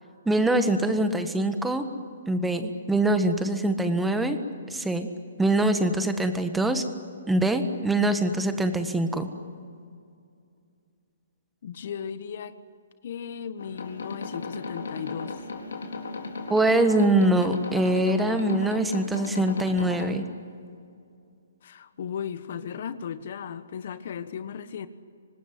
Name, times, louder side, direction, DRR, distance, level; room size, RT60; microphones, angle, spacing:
voice 1, 0.2-1.8 2.3-4.4 4.7-5.1 5.4-6.8 7.3-9.3 16.5-20.2, right 1 dB, 5° right, 8 dB, 1.6 m, -23 dB
voice 2, 11.6-12.5 13.0-15.4 21.6-24.9, left 7 dB, 55° left, 13 dB, 1.4 m, -36 dB
sound 1, 13.6-20.1, left 3 dB, 75° left, 4.2 m, -36 dB
26.0 x 19.5 x 9.5 m, 2.4 s
hypercardioid pair, 145°, 0 cm